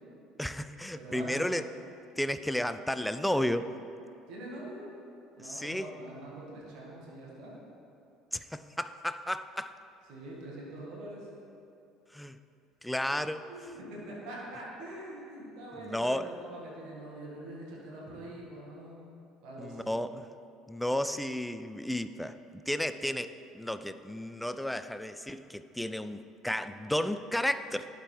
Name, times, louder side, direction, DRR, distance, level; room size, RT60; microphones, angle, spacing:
voice 1, 0.4-1.7 2.2-3.7 5.4-5.9 8.3-9.7 12.1-12.4 12.8-13.4 15.8-16.3 19.6-20.1 20.7-22.3 22.7-27.9, left 1 dB, 5° left, 11 dB, 0.3 m, -33 dB
voice 2, 0.9-1.4 4.3-4.9 5.4-7.6 10.1-11.3 13.5-20.0, right 1 dB, 60° right, -4 dB, 1.6 m, -44 dB
11.0 x 5.2 x 3.2 m, 2.7 s
figure-of-eight pair, 60°, 0 cm